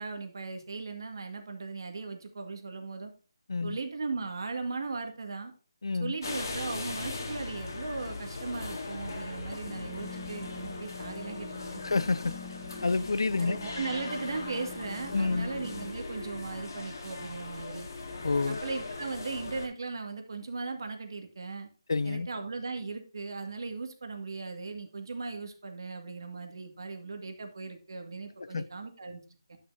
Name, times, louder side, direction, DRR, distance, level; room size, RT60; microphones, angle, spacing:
voice 1, 0.0-3.1 3.6-5.5 6.0-11.8 13.4-17.9 18.4-21.7 22.0-29.2 29.5-29.6, right 4 dB, 55° right, 2.0 m, -38 dB
voice 2, 5.8-6.1 11.8-12.4 12.8-13.6 15.1-15.5 18.2-18.6 21.9-22.3 28.4-28.7, left 3 dB, 70° left, 0.6 m, -28 dB
sound 1, 6.2-19.7, left 3 dB, 45° left, 2.0 m, -40 dB
sound 2, 9.7-15.9, left 4 dB, 25° left, 0.9 m, -45 dB
11.0 x 6.8 x 2.7 m
hypercardioid pair, 175°, 3 cm